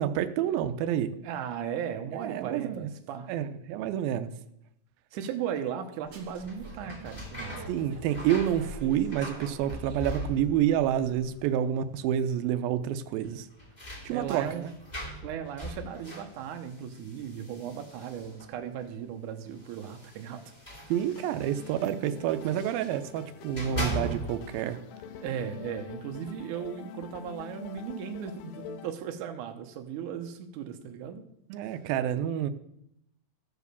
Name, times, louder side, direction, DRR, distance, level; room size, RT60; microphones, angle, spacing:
voice 1, 0.0-1.2 2.1-2.9 3.3-4.3 7.7-13.5 14.0-14.7 20.9-24.8 31.5-32.5, right 10 dB, 90° right, 11 dB, 2.4 m, -28 dB
voice 2, 1.2-3.3 5.1-7.6 14.1-14.6 15.2-20.4 25.2-31.2 31.7-31.8, right 8 dB, 70° right, 5 dB, 2.2 m, -37 dB
sound 1, 6.0-11.6, right 2 dB, 45° right, 1.6 m, -45 dB
sound 2, 6.4-10.8 11.0-11.7 12.0-12.1 13.2-18.6 19.5-23.0 23.4-24.6, equal, 15° left, 2.0 m, -40 dB
sound 3, 20.9-28.9, left 10 dB, 90° left, 2.4 m, -46 dB
14.5 x 4.8 x 6.7 m, 0.77 s
omnidirectional pair, 4.0 m